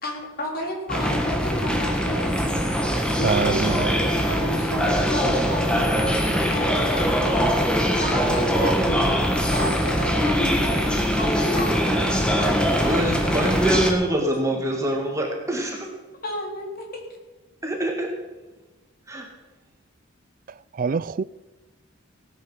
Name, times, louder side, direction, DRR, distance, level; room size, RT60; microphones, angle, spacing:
voice 1, 0.0-2.4 3.1-6.1 6.5-7.4 7.9-9.1 9.5-13.0 16.2-17.0, left 1 dB, 45° left, 3.6 m, -32 dB
sound 1, 0.9-13.9, equal, 5° left, 1.4 m, -22 dB
voice 2, 3.2-4.0 20.7-21.2, right 5 dB, 40° right, 0.3 m, -25 dB
voice 3, 12.8-15.9 17.6-18.1 19.1-19.3, right 1 dB, 15° right, 2.0 m, -25 dB
17.0 x 9.0 x 5.7 m
head